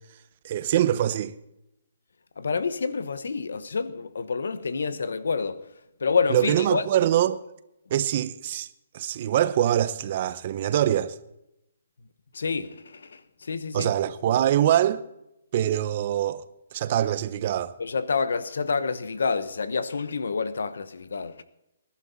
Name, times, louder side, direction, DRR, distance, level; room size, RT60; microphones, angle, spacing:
voice 1, 0.4-1.3 6.3-7.4 7.9-8.7 8.9-11.1 13.7-15.0 15.5-16.4 16.7-17.7, right 11 dB, 40° right, 0.8 m, -24 dB
voice 2, 2.4-5.6 6.0-6.9 12.3-13.9 17.8-21.4, left 5 dB, 80° left, 1.1 m, -28 dB
21.0 x 11.5 x 4.1 m
hypercardioid pair, 155°, 0 cm